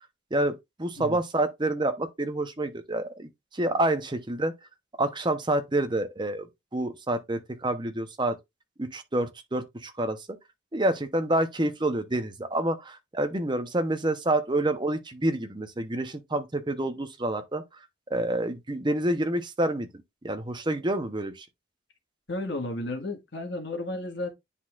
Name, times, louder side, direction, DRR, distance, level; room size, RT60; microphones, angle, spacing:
voice 1, 0.3-4.5 5.0-6.5 6.7-8.3 8.8-10.3 10.7-17.6 18.1-19.9 20.2-21.5, right 1 dB, 20° right, 0.8 m, -28 dB
voice 2, 22.3-24.3, left 2 dB, 55° left, 1.7 m, -33 dB
10.0 x 4.1 x 2.4 m
head